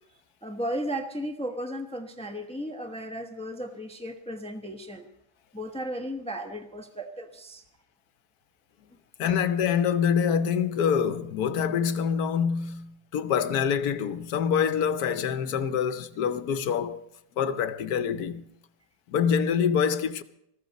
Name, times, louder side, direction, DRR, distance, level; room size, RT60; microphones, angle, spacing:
voice 1, 0.4-5.1 5.5-7.6, equal, 5° left, 1.0 m, -35 dB
voice 2, 9.2-17.0 17.4-18.4 19.1-20.2, left 7 dB, 75° left, 1.3 m, -26 dB
19.5 x 14.5 x 4.1 m
omnidirectional pair, 1.6 m